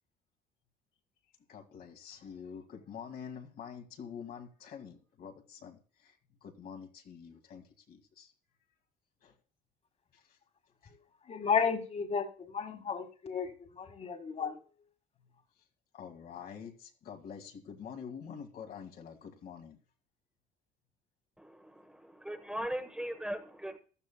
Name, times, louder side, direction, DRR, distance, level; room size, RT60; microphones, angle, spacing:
voice 1, 1.5-6.2 6.4-8.3 9.2-9.3 10.1-10.4 10.8-10.9 15.9-19.8, left 7 dB, 65° left, 2.0 m, -47 dB
voice 2, 11.2-14.6, left 6 dB, 40° left, 1.9 m, -33 dB
voice 3, 21.4-23.8, right 1 dB, 5° right, 1.1 m, -39 dB
15.0 x 12.0 x 2.2 m
cardioid pair, 110°, 17 cm